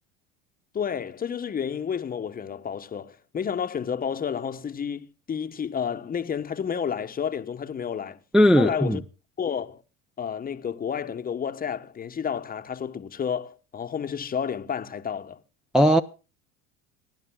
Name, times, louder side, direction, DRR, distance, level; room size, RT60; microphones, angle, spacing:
voice 1, 0.7-8.2 8.6-9.0 9.4-9.8 10.2-15.4, left 7 dB, 30° left, 1.0 m, -30 dB
voice 2, 8.3-9.0 15.7-16.0, equal, ahead, 0.5 m, -17 dB
27.5 x 10.5 x 2.2 m
hypercardioid pair, 80°, 30 cm